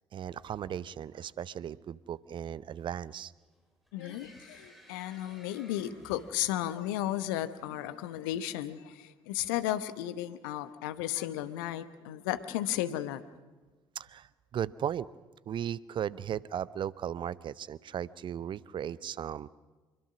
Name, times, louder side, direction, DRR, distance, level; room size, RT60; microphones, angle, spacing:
voice 1, 0.1-3.3 14.0-14.3 14.5-15.1 15.5-19.5, right 9 dB, 45° right, 19 dB, 0.7 m, -36 dB
sound 1, 3.5-7.2, equal, ahead, 7.8 m, -56 dB
voice 2, 3.9-13.2, left 13 dB, 70° left, 13 dB, 1.0 m, -34 dB
26.0 x 23.5 x 6.2 m, 1.2 s
figure-of-eight pair, 50°, 12 cm